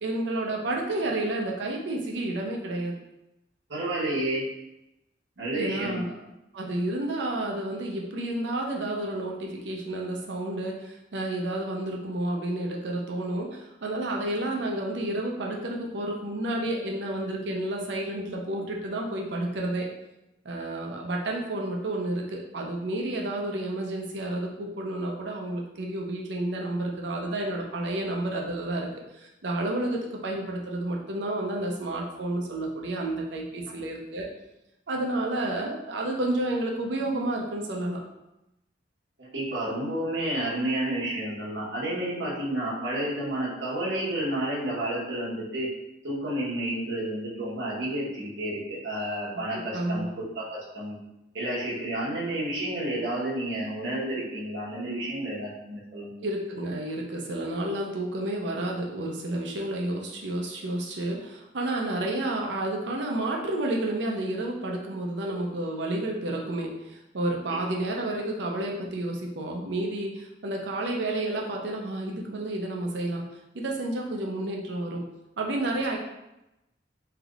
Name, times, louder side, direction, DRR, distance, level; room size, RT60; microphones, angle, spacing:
voice 1, 0.0-2.9 5.5-6.1 6.5-19.9 20.4-28.9 29.1-34.3 34.9-38.0 49.7-50.1 56.2-73.2 73.5-75.0 75.4-76.0, right 1 dB, 70° right, 0 dB, 0.6 m, -30 dB
voice 2, 3.7-4.4 5.4-6.0 39.2-45.7 46.0-51.0 51.3-56.2 67.5-67.6, right 1 dB, 90° right, -6 dB, 1.1 m, -30 dB
3.3 x 2.8 x 2.4 m, 0.91 s
head